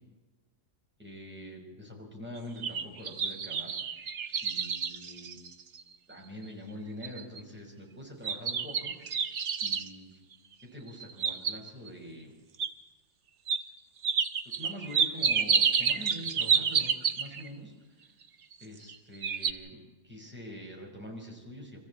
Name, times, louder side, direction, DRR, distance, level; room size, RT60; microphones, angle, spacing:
voice 1, 1.0-3.8 4.4-5.4 6.1-9.4 9.6-10.2 10.6-12.4 14.4-18.1 18.6-21.8, equal, 5° right, 0 dB, 5.3 m, -45 dB
sound 1, 2.4-5.9 6.4-6.5 7.0-7.4 8.2-9.9 10.9-11.9 12.6-12.7 13.5-13.6 14.0-17.5 18.5-19.0 19.2-19.5, right 6 dB, 50° right, 1.2 m, -29 dB
25.0 x 15.0 x 8.5 m, 1.2 s
omnidirectional pair, 1.8 m